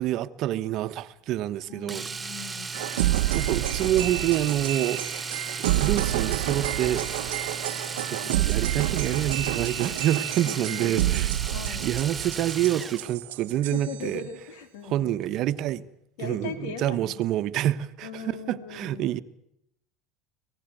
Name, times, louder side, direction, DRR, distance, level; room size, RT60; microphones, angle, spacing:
voice 1, 0.0-2.1 2.9-3.0 3.3-5.0 5.6-7.4 8.1-11.3 11.7-14.3 14.8-15.9 16.2-19.2, right 12 dB, 55° right, 1.1 m, -27 dB
voice 2, 1.7-2.8 8.2-8.4 10.4-11.2 11.5-11.9 13.7-15.2 16.2-17.3 18.0-19.0, left 7 dB, 75° left, 3.8 m, -39 dB
Domestic sounds home sounds, 1.9-13.1 15.3-15.4 15.7-15.8, right 4 dB, 20° right, 1.0 m, -35 dB
sound 1, 2.7-14.1, right 15 dB, 80° right, 0.9 m, -29 dB
Laughter, 10.3-13.4 13.7-13.8 14.1-14.2, left 1 dB, 15° left, 6.7 m, -56 dB
25.0 x 18.0 x 9.3 m
hypercardioid pair, 85°, 0 cm